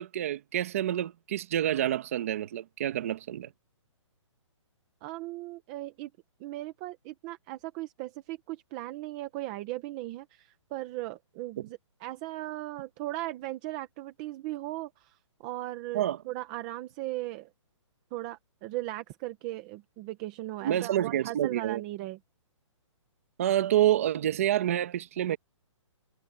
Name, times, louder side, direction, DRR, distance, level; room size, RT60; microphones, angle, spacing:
voice 1, 0.0-3.5 11.6-11.7 15.9-16.2 20.6-21.8 23.4-25.4, right 12 dB, 25° right, 1.7 m, -28 dB
voice 2, 5.0-6.1 6.4-17.5 18.1-22.2, right 17 dB, 10° right, 0.7 m, -38 dB
hypercardioid pair, 180°, 16 cm